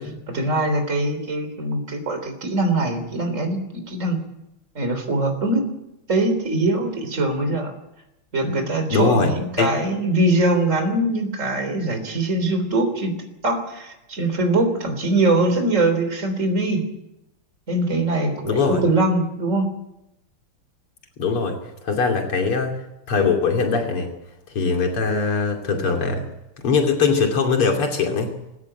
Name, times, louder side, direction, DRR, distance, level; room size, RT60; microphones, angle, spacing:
voice 1, 0.0-4.2 4.8-5.7 6.1-7.7 8.3-13.1 13.4-16.8 17.7-19.7, right 2 dB, 35° right, 6 dB, 3.9 m, -22 dB
voice 2, 8.9-9.3 9.6-9.7 18.4-18.8 21.2-21.6 21.8-22.7 23.1-24.1 24.5-26.2 26.6-28.3, left 4 dB, 90° left, 3 dB, 3.5 m, -21 dB
20.5 x 16.5 x 8.9 m, 0.88 s
omnidirectional pair, 2.4 m